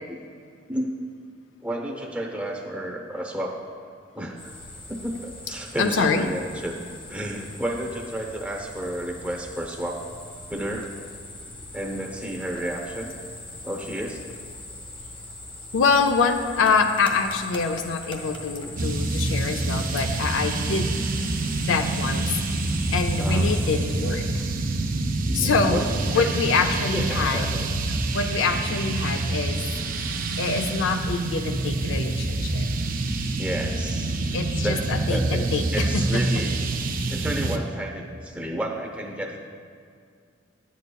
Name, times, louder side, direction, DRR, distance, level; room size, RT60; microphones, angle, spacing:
voice 1, 1.6-3.6 4.1-4.5 4.9-6.7 7.1-10.0 10.5-10.9 11.7-13.3 13.6-14.3 23.2-23.5 25.2-26.3 26.9-27.7 33.4-34.3 34.6-35.4 35.7-36.6 37.1-39.4, right 1 dB, 5° right, 0 dB, 0.7 m, -31 dB
sound 1, 4.4-23.8, left 1 dB, 25° left, 0.8 m, -41 dB
voice 2, 5.8-6.2 15.7-21.0 21.6-22.6 22.9-24.4 25.3-25.8 26.1-27.4 28.1-29.6 30.4-32.7 34.3-36.2, left 4 dB, 85° left, 6 dB, 0.5 m, -25 dB
sound 2, 18.8-37.6, right 2 dB, 45° right, 0.5 m, -26 dB
10.5 x 8.2 x 2.3 m, 2.2 s
head